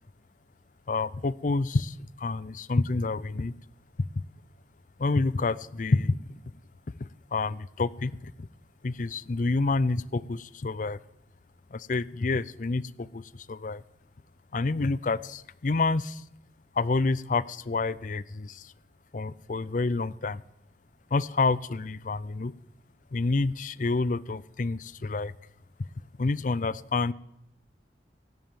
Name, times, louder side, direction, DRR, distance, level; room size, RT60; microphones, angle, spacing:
voice 1, 0.9-3.5 5.0-6.2 7.0-8.5 8.8-11.0 11.7-13.8 14.5-16.2 16.8-18.7 19.1-20.4 21.1-22.5 23.1-25.3 26.2-27.1, left 3 dB, 45° left, 19 dB, 0.5 m, -28 dB
17.0 x 11.0 x 7.4 m, 0.80 s
head